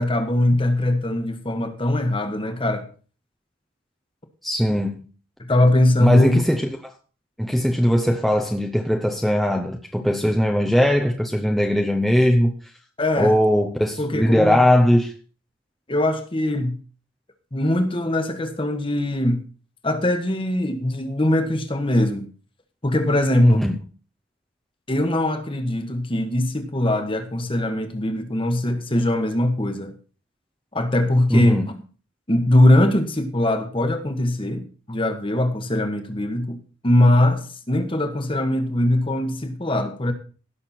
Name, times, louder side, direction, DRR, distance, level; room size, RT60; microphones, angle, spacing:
voice 1, 0.0-2.8 5.4-6.4 13.0-13.3 14.0-14.6 15.9-16.8 17.5-19.4 19.8-22.3 22.8-23.6 24.9-29.9 30.7-31.6 32.3-36.6 36.8-40.1, left 1 dB, 25° left, 1.3 m, -21 dB
voice 2, 4.4-5.0 6.0-6.9 7.4-12.5 13.2-15.1 23.4-23.7 31.3-31.7, equal, ahead, 0.8 m, -19 dB
16.5 x 6.5 x 4.2 m
head